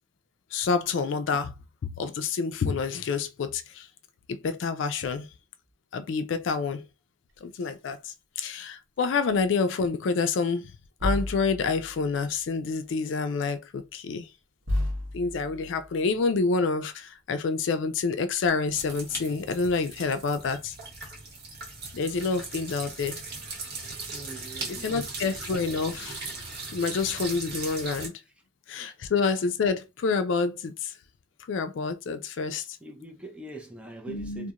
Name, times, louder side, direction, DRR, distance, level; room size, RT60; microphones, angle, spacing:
voice 1, 0.5-1.5 1.8-3.9 4.3-5.3 5.9-6.9 7.4-10.7 11.0-14.3 15.1-20.7 21.9-23.2 24.8-26.2 26.7-28.2 28.7-30.9 31.5-32.8 34.1-34.5, left 4 dB, 65° left, 0.4 m, -28 dB
sound 1, 7.3-7.5 9.3-9.5 11.0-12.6 13.8-13.9 14.6-16.4 18.0-18.1 18.3-18.9 19.6-20.2 20.9-21.1, left 1 dB, 85° right, 0.9 m, -34 dB
sound 2, 18.7-28.1, right 3 dB, 55° right, 0.9 m, -38 dB
voice 2, 24.1-25.1 32.8-34.5, right 2 dB, 5° right, 0.4 m, -43 dB
2.4 x 2.0 x 2.8 m
head